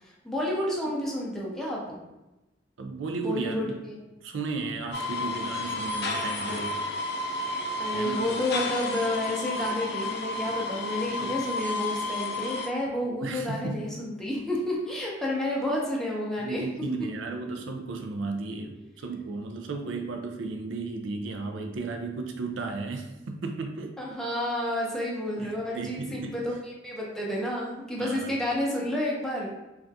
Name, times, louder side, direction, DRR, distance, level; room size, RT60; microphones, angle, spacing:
voice 1, 0.0-2.0 3.2-4.0 7.8-16.6 24.0-29.5, left 1 dB, 5° left, -4 dB, 0.6 m, -30 dB
voice 2, 2.8-3.7 4.2-7.1 7.9-8.2 11.2-11.4 13.1-13.8 16.4-23.9 25.4-26.4 28.0-28.3, right 3 dB, 70° right, 4 dB, 0.4 m, -34 dB
sound 1, 4.9-12.7, left 2 dB, 60° left, 0.4 m, -31 dB
3.4 x 2.4 x 2.6 m, 1.0 s
head